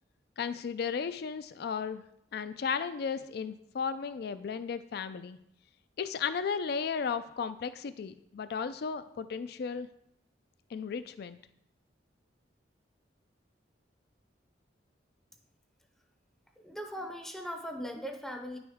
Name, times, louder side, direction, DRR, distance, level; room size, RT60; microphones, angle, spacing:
voice 1, 0.4-2.0 2.3-5.4 6.0-9.9 10.7-11.4, left 6 dB, 60° left, 12 dB, 0.4 m, -34 dB
voice 2, 16.6-18.6, equal, ahead, 3 dB, 0.6 m, -39 dB
9.6 x 6.2 x 3.5 m, 0.76 s
head